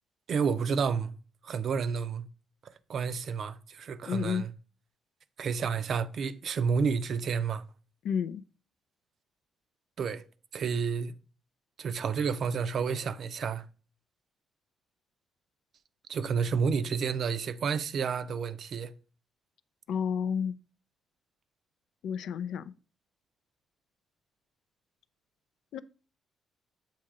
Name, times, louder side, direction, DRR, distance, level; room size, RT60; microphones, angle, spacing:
voice 1, 0.3-1.1 1.4-2.2 2.9-4.5 5.4-7.6 10.0-10.2 10.5-11.1 11.8-13.6 16.1-18.9, right 6 dB, 60° right, 0.5 m, -30 dB
voice 2, 4.1-4.4 8.0-8.4 19.9-20.5 22.0-22.7 25.7-25.8, left 7 dB, 75° left, 0.3 m, -31 dB
7.3 x 2.8 x 4.8 m
cardioid pair, 90°, 0 cm